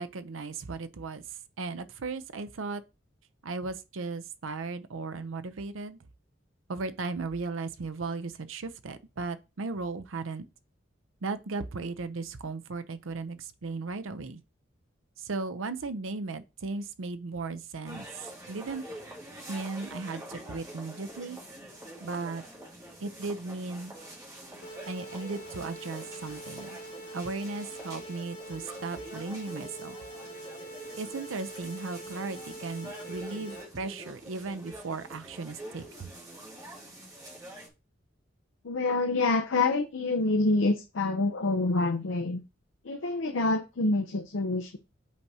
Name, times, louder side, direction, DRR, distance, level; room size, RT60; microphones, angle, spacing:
voice 1, 0.0-2.8 3.4-6.0 6.7-10.4 11.2-14.4 15.2-18.1 18.5-18.8 19.5-21.4 22.0-22.4 23.0-23.9 24.9-26.8 27.1-30.0 31.0-36.1, right 3 dB, 90° right, 0.6 m, -36 dB
sound 1, 17.8-37.7, right 1 dB, 20° right, 1.9 m, -46 dB
sound 2, 24.6-33.6, right 1 dB, 35° left, 2.5 m, -44 dB
voice 2, 38.6-42.4 42.9-44.8, left 3 dB, 75° left, 0.6 m, -27 dB
8.3 x 4.7 x 2.8 m
head